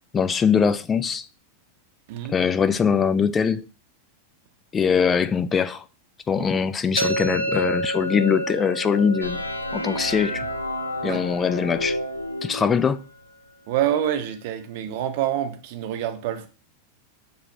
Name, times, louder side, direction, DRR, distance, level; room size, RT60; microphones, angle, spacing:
voice 1, 0.1-1.3 2.3-3.6 4.7-5.8 6.3-9.4 9.7-10.5 11.0-12.0 12.4-13.0, left 6 dB, 20° left, 0.3 m, -22 dB
sound 1, 7.0-12.8, right 1 dB, 85° right, 1.0 m, -30 dB
sound 2, 9.2-13.0, equal, 85° left, 0.4 m, -31 dB
voice 2, 13.7-16.5, right 11 dB, 50° right, 0.7 m, -26 dB
6.8 x 2.3 x 3.2 m
figure-of-eight pair, 90°, 0 cm